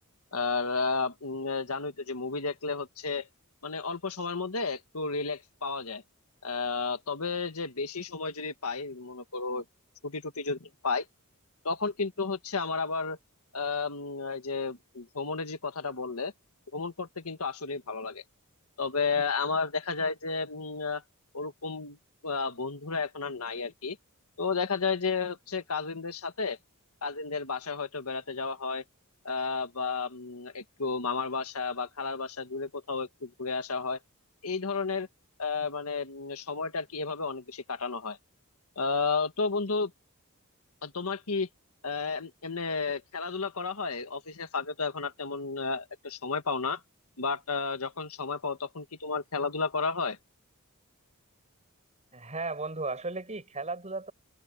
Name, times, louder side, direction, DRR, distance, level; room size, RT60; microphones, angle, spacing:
voice 1, 0.3-3.3 3.6-6.0 6.4-9.6 10.0-11.0 11.6-13.2 13.5-16.3 16.7-18.2 18.8-21.0 21.3-22.0 22.2-24.0 24.4-26.6 27.0-28.8 29.2-34.0 34.4-35.1 35.4-38.2 38.7-39.9 40.8-41.5 41.8-46.8 47.2-50.2, left 4 dB, 75° left, 1.7 m, -32 dB
voice 2, 52.1-54.1, right 3 dB, 30° right, 7.0 m, -35 dB
open air
head